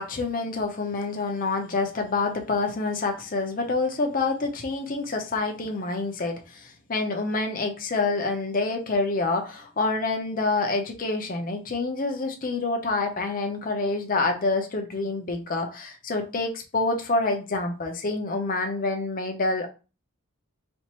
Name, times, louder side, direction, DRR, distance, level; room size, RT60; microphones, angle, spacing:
voice 1, 0.0-19.7, left 3 dB, 40° left, 4 dB, 0.7 m, -27 dB
4.3 x 2.5 x 2.9 m, 0.32 s
head